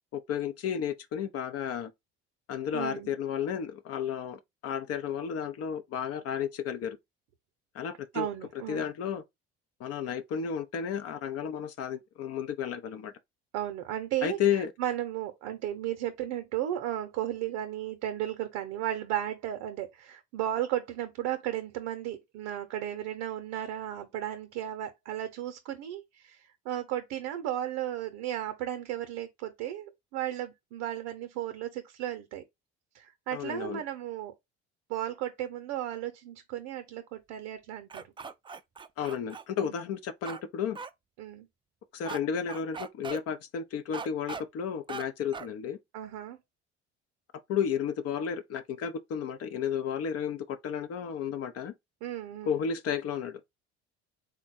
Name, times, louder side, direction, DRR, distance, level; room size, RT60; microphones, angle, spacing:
voice 1, 0.1-1.9 2.5-7.0 7.7-8.3 8.7-9.2 9.8-13.1 14.2-14.7 33.3-33.8 39.0-40.8 41.9-45.8 47.5-51.7 52.5-53.4, left 8 dB, 55° left, 0.6 m, -32 dB
voice 2, 2.7-3.1 8.1-8.9 13.5-32.4 32.9-34.3 34.9-38.0 39.6-39.8 41.2-41.5 45.9-46.4 52.0-52.6, right 12 dB, 75° right, 0.6 m, -35 dB
sound 1, 37.9-39.4 40.3-40.4 40.8-40.9 42.1-42.2 42.5-43.2 43.9-44.4 44.9-45.0 45.3-45.5, right 5 dB, 15° right, 0.3 m, -39 dB
3.6 x 2.1 x 3.9 m
hypercardioid pair, 70°, 30 cm